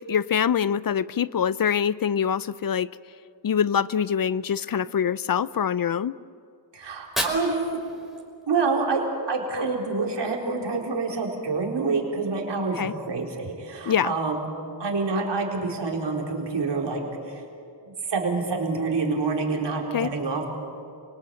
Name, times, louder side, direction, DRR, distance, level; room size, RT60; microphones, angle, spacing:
voice 1, 0.1-2.9 3.4-6.1 12.8-12.9 13.9-14.1 19.9-20.1, left 8 dB, 50° left, 18 dB, 0.6 m, -24 dB
voice 2, 6.7-7.8 8.5-9.0 9.3-14.5 14.8-17.4 17.8-20.4, right 4 dB, 70° right, 0 dB, 4.3 m, -27 dB
Fire, 6.8-8.9, equal, ahead, 4.6 m, -34 dB
29.0 x 19.0 x 8.9 m, 2.5 s
cardioid pair, 60°, 43 cm